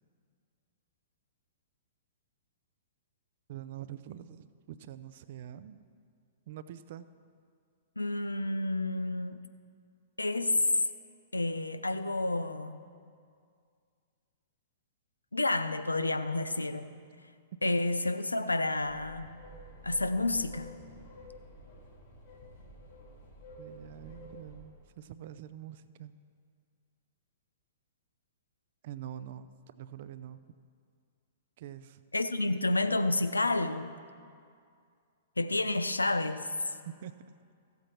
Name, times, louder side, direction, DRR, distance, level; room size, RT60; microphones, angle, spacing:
voice 1, 3.5-5.8 6.5-7.0 23.6-26.1 28.8-29.5 29.8-30.5 31.6-32.0 37.0-37.1, right 11 dB, 55° right, 0.5 m, -45 dB
voice 2, 8.0-9.5 10.2-10.7 11.3-12.8 15.3-16.9 17.6-19.4 19.8-20.7 32.1-33.9 35.4-36.4, left 2 dB, 90° left, 0.5 m, -30 dB
sound 1, 18.8-24.6, equal, 55° left, 3.1 m, -50 dB
14.0 x 8.0 x 4.5 m
figure-of-eight pair, 110°, 0 cm